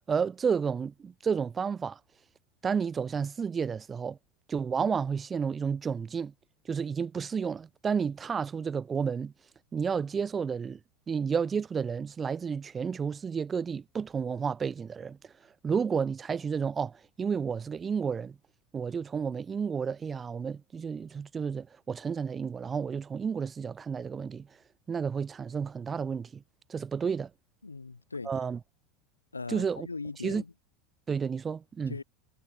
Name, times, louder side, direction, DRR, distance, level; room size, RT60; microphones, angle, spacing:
voice 1, 0.1-2.0 2.6-4.2 4.5-6.3 6.7-9.3 9.7-10.8 11.1-15.3 15.6-18.4 18.7-24.6 24.9-26.4 26.7-27.3 28.2-28.6 29.5-29.9 30.2-30.4 31.1-32.0, right 6 dB, 25° right, 0.4 m, -31 dB
voice 2, 27.6-28.3 29.3-30.5 31.9-32.0, left 4 dB, 90° left, 0.5 m, -39 dB
figure-of-eight pair, 80°, 0 cm